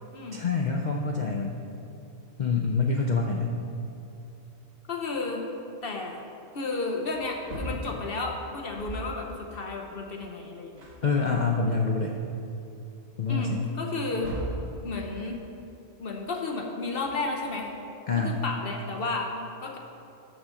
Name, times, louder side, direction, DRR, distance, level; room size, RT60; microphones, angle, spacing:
voice 1, 0.3-1.6 2.4-3.5 11.0-12.2 13.2-13.6 18.1-18.3, left 4 dB, 70° left, 1 dB, 0.4 m, -26 dB
voice 2, 4.9-5.4 5.8-6.2 6.5-10.8 13.3-14.3 14.8-15.4 16.0-17.7 18.1-19.8, left 3 dB, 50° left, 1 dB, 0.8 m, -32 dB
Wood, 7.1-9.2 10.3-10.4 10.8-12.0 12.5-12.6 13.8-14.7 16.7-17.7, right 1 dB, 55° right, 1.5 m, -39 dB
6.6 x 6.2 x 6.2 m, 2.8 s
omnidirectional pair, 1.4 m